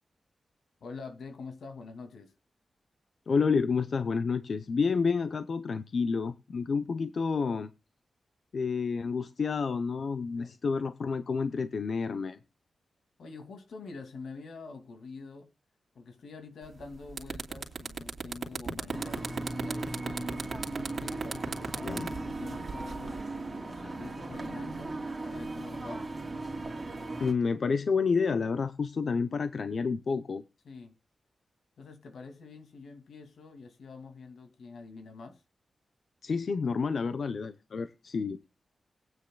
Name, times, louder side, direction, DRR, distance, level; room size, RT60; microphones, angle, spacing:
voice 1, 0.8-2.3 10.3-10.5 13.2-15.5 15.9-20.4 21.0-25.0 25.2-26.0 30.6-30.9 31.8-35.4, left 4 dB, 90° left, 2.3 m, -46 dB
voice 2, 3.3-7.7 8.5-12.4 21.8-22.1 27.2-30.4 36.2-38.4, left 5 dB, 60° left, 0.7 m, -29 dB
sound 1, 16.7-16.8 17.1-23.2, right 5 dB, 55° right, 2.8 m, -35 dB
sound 2, 18.9-27.3, right 2 dB, 25° right, 2.8 m, -37 dB
21.0 x 9.3 x 2.2 m
wide cardioid pair, 125°, 0 cm